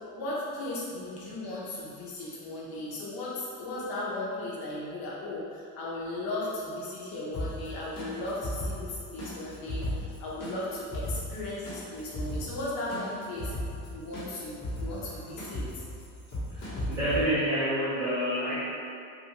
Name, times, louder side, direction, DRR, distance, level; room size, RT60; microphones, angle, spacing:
voice 1, 0.1-13.5 13.9-15.8, left 2 dB, 65° left, -6 dB, 0.8 m, -36 dB
sound 1, 7.3-17.2, left 1 dB, 40° left, 1.2 m, -37 dB
voice 2, 16.5-18.5, right 1 dB, 10° right, -13 dB, 0.6 m, -28 dB
3.3 x 2.5 x 2.9 m, 2.4 s
cardioid pair, 145°, 38 cm